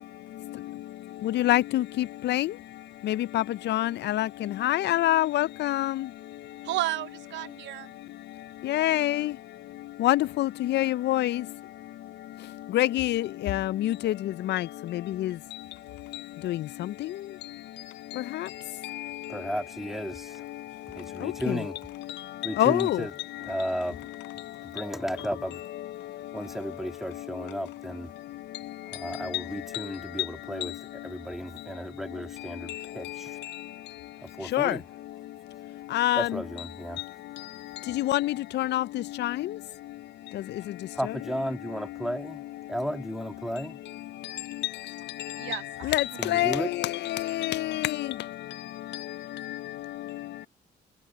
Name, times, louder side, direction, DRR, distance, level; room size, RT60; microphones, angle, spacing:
voice 1, 1.3-1.8 2.2-2.5 3.1-4.3 4.6-5.9 8.7-9.3 10.0-11.3 12.7-14.1 14.5-14.6 15.2-15.3 16.5-16.6 22.6-23.0 34.5-34.7 35.9-36.3 38.0-38.8 39.2-39.3 45.9-46.0 46.3-46.6 47.4-47.5, left 15 dB, 70° left, 0.5 m, -24 dB
voice 2, 6.6-7.9 45.4-46.4, right 16 dB, 80° right, 0.7 m, -33 dB
sound 1, 15.1-29.6, left 18 dB, 90° left, 5.0 m, -62 dB
voice 3, 19.3-20.5 20.9-21.9 22.4-25.6 26.0-28.1 28.8-33.5 34.2-35.3 35.5-37.2 37.7-37.8 40.6-43.9 45.2-45.3 46.1-46.8 48.1-48.3, equal, ahead, 1.8 m, -35 dB
supercardioid pair, 50°, 18 cm